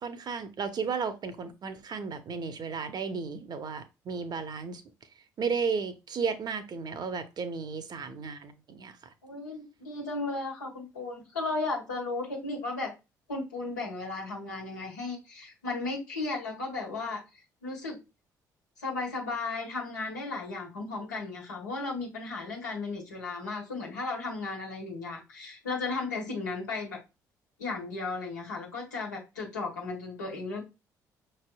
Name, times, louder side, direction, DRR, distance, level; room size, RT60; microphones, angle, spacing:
voice 1, 0.0-4.8 5.4-9.0, right 5 dB, 45° right, 0.8 m, -34 dB
voice 2, 9.2-12.9 13.3-17.2 17.6-18.0 18.8-27.0 27.6-30.6, left 3 dB, 90° left, 1.3 m, -35 dB
5.7 x 3.4 x 2.2 m
hypercardioid pair, 50°, 9 cm